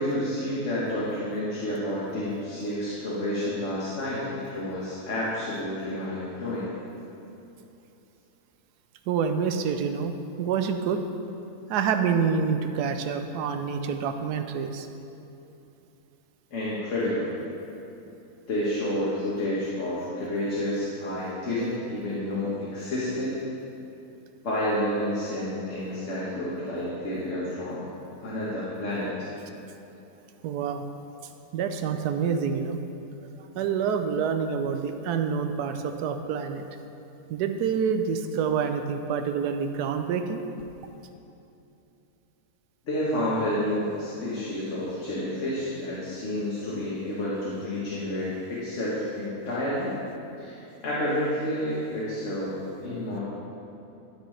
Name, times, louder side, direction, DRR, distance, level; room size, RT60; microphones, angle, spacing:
voice 1, 0.0-6.6 16.5-17.3 18.5-23.3 24.4-27.9 28.2-29.3 42.9-50.0 50.4-50.6 50.8-53.2, left 1 dB, 50° left, -8 dB, 1.6 m, -30 dB
voice 2, 9.1-10.1 10.4-11.0 11.7-14.9 30.4-30.8 31.5-32.8 33.6-36.7 37.3-40.4, right 6 dB, 85° right, 7 dB, 1.1 m, -27 dB
12.0 x 6.3 x 3.3 m, 2.8 s
omnidirectional pair, 1.7 m